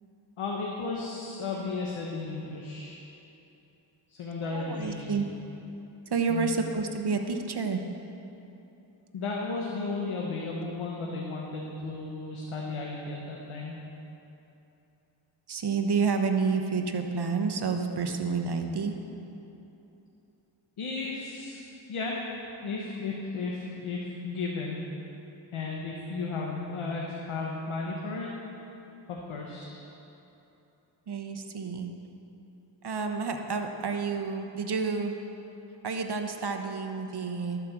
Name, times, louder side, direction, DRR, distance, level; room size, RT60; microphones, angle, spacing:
voice 1, 0.4-3.0 4.1-5.2 6.3-6.5 9.1-13.8 20.8-22.2 22.6-24.8 25.5-28.3 29.1-29.8, left 3 dB, 85° left, -2 dB, 1.1 m, -34 dB
voice 2, 4.4-5.3 6.1-7.8 15.5-18.9 31.1-31.9 32.8-35.1 35.8-37.6, right 5 dB, 50° right, 5 dB, 1.1 m, -29 dB
12.0 x 5.2 x 7.2 m, 2.9 s
cardioid pair, 45°, 49 cm